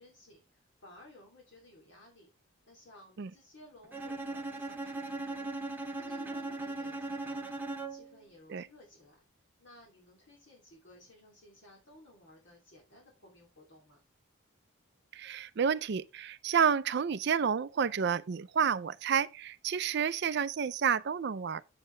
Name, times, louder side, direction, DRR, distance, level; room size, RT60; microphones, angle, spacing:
voice 1, 0.0-2.3 2.7-7.6 7.9-9.2 9.6-14.0, left 1 dB, 55° left, 2.9 m, -57 dB
Bowed string instrument, 3.9-8.2, right 2 dB, 10° right, 0.8 m, -38 dB
voice 2, 15.1-21.6, right 7 dB, 50° right, 0.4 m, -30 dB
7.9 x 7.4 x 3.3 m
head